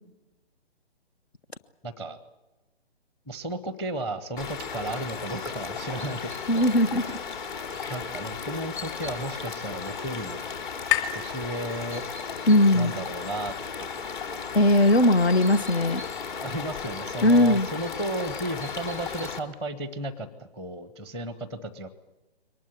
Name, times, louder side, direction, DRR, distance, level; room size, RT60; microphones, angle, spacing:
voice 1, 1.8-2.2 3.3-6.7 7.0-7.2 7.9-10.4 11.1-12.0 12.7-13.9 16.4-21.9, right 1 dB, 5° left, 14 dB, 0.8 m, -34 dB
sound 1, 4.4-19.4, left 5 dB, 50° left, 3.1 m, -35 dB
voice 2, 6.5-7.0 7.8-8.0 12.5-12.9 14.5-16.0 17.2-17.7, left 1 dB, 70° left, 14 dB, 1.2 m, -19 dB
sound 2, 8.5-12.3, left 12 dB, 30° left, 2.7 m, -34 dB
23.0 x 20.0 x 9.5 m, 1.1 s
figure-of-eight pair, 135°, 32 cm